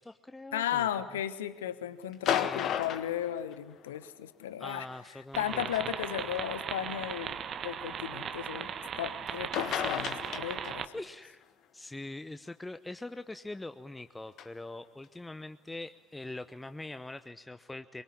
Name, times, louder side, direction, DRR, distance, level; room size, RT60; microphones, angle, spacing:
voice 1, 0.0-0.9 2.3-2.7 4.6-5.9 8.6-8.7 10.9-11.4 11.7-18.0, left 2 dB, 10° left, 10 dB, 0.8 m, -43 dB
voice 2, 0.5-4.9 5.4-10.9, left 11 dB, 75° left, 14 dB, 1.0 m, -35 dB
sound 1, 2.1-4.0 5.3-5.5 6.4-6.5 9.3-9.4 9.5-11.0 14.4-14.5, left 9 dB, 50° left, 1.5 m, -33 dB
sound 2, 5.3-10.9, right 8 dB, 45° right, 1.2 m, -38 dB
24.0 x 23.0 x 9.9 m, 1.3 s
figure-of-eight pair, 60°, 0 cm